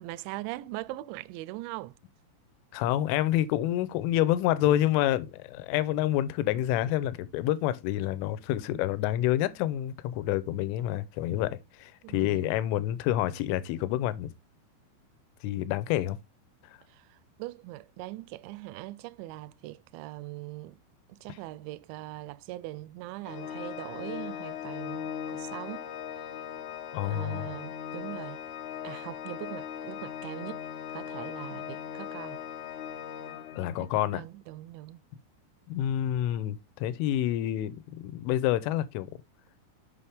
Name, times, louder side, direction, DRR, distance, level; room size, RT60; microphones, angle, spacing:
voice 1, 0.0-2.0 12.0-12.6 16.9-20.8 21.1-25.9 27.0-28.4 28.8-30.6 30.9-32.4 33.8-35.0, right 17 dB, 85° right, 2.7 m, -41 dB
voice 2, 2.7-14.3 15.4-16.2 26.9-27.5 33.6-34.2 35.7-39.1, left 13 dB, 85° left, 3.1 m, -28 dB
Organ, 23.3-34.0, left 9 dB, 70° left, 2.5 m, -39 dB
7.7 x 5.6 x 3.3 m
omnidirectional pair, 5.5 m